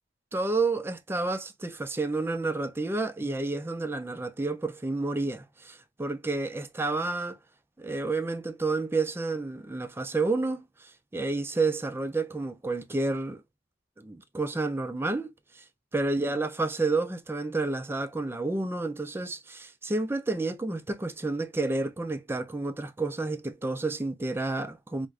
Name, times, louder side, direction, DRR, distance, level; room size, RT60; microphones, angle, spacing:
voice 1, 0.3-7.4 7.8-10.6 11.1-13.4 14.0-15.6 15.9-25.1, right 3 dB, 15° right, 0.4 m, -30 dB
4.6 x 2.1 x 2.3 m
head